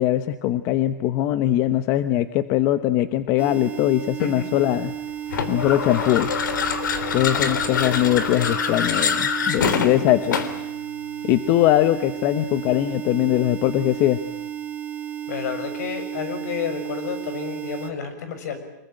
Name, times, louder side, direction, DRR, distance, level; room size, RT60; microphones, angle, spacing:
voice 1, 0.0-4.9 5.5-6.3 7.1-10.4 11.2-14.2, left 13 dB, 30° left, 12 dB, 0.9 m, -21 dB
sound 1, 3.4-17.9, right 10 dB, 15° right, 1.4 m, -33 dB
voice 2, 4.2-4.6 15.3-18.6, left 6 dB, 60° left, 9 dB, 6.5 m, -30 dB
sound 2, 5.3-10.7, left 6 dB, 80° left, 3.3 m, -25 dB
26.0 x 21.5 x 9.0 m, 0.93 s
supercardioid pair, 160°, 10 cm